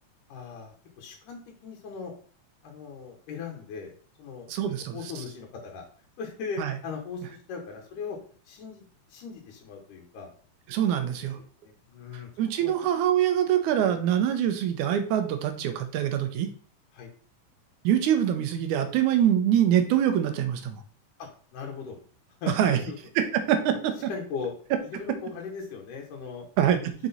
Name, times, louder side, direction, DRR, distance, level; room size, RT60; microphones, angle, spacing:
voice 1, 0.3-2.1 2.6-3.9 4.2-5.8 6.2-8.2 8.5-10.3 11.0-11.1 11.6-12.3 12.6-12.7 16.9-17.1 21.2-22.0 22.4-23.0 24.1-24.5 24.9-26.5, left 5 dB, 90° left, 0 dB, 2.6 m, -39 dB
voice 2, 4.5-5.0 6.6-6.7 10.7-11.4 12.4-16.5 17.8-20.8 22.6-22.8 23.2-24.1 26.6-26.9, right 10 dB, 80° right, 8 dB, 2.1 m, -24 dB
6.0 x 3.9 x 4.1 m, 0.43 s
omnidirectional pair, 3.6 m